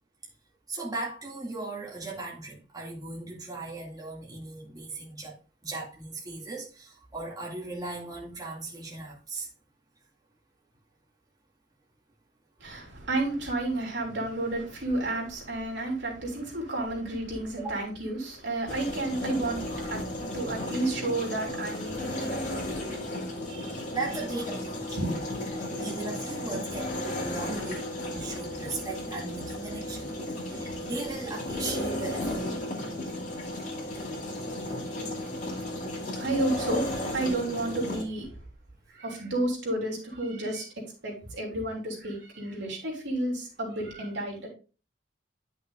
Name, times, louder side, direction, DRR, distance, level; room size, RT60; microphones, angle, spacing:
voice 1, 0.7-5.4 5.6-9.5 17.6-17.8 22.1-22.2 23.9-25.0 25.8-30.1 30.4-32.5, right 3 dB, 20° right, 2.1 m, -37 dB
voice 2, 12.6-22.9 23.4-23.8 25.0-25.2 36.2-38.3 38.9-40.6 41.0-44.5, right 2 dB, 70° right, 3.2 m, -31 dB
sound 1, 18.7-38.0, left 1 dB, 40° left, 2.6 m, -34 dB
11.0 x 6.0 x 2.4 m
head